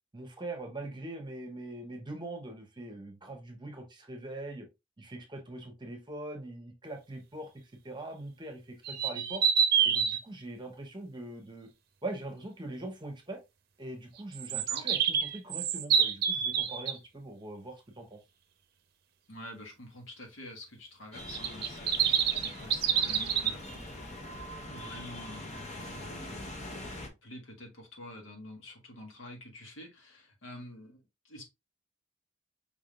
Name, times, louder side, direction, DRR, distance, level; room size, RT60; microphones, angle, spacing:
voice 1, 0.1-4.7 5.0-7.5 7.8-9.5 9.8-11.7 12.0-13.4 13.8-18.2, right 2 dB, 25° right, 1.0 m, -42 dB
sound 1, 8.8-10.2 14.3-16.9 21.3-23.5, right 8 dB, 50° right, 0.6 m, -27 dB
voice 2, 14.5-14.8 19.3-23.9 24.7-26.4 27.0-31.4, left 1 dB, 75° left, 1.6 m, -48 dB
sound 2, 21.1-27.1, left 1 dB, 35° left, 1.0 m, -43 dB
5.1 x 3.6 x 2.5 m
head